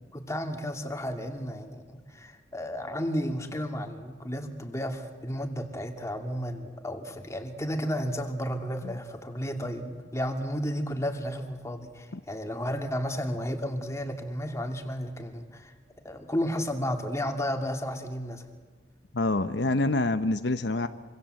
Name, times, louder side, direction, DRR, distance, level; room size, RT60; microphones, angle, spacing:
voice 1, 0.1-15.7 16.0-18.5, equal, 15° left, 4 dB, 2.5 m, -33 dB
voice 2, 19.1-20.9, left 2 dB, 70° left, 9 dB, 1.0 m, -26 dB
26.0 x 25.5 x 7.8 m, 1.4 s
head